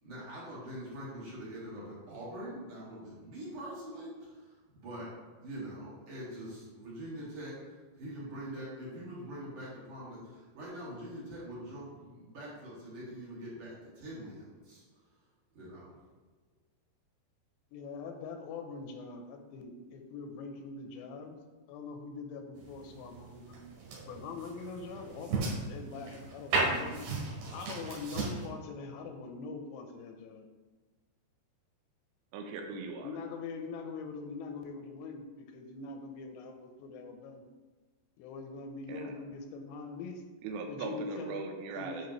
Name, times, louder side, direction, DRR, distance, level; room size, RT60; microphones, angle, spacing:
voice 1, 0.0-5.1 5.4-7.6 7.9-14.8 15.5-16.0, right 1 dB, 50° right, -7 dB, 3.0 m, -44 dB
voice 2, 17.7-21.4 21.7-23.6 24.1-27.0 27.5-30.5 33.0-37.5 38.2-40.2 40.7-41.4 41.8-42.1, left 4 dB, 85° left, 4 dB, 2.8 m, -43 dB
sound 1, 22.6-28.5, right 3 dB, 70° right, 3.7 m, -36 dB
voice 3, 32.3-33.2 38.9-39.1 40.4-42.1, right 4 dB, 90° right, 3 dB, 3.1 m, -39 dB
10.5 x 4.9 x 3.1 m, 1.3 s
omnidirectional pair, 5.0 m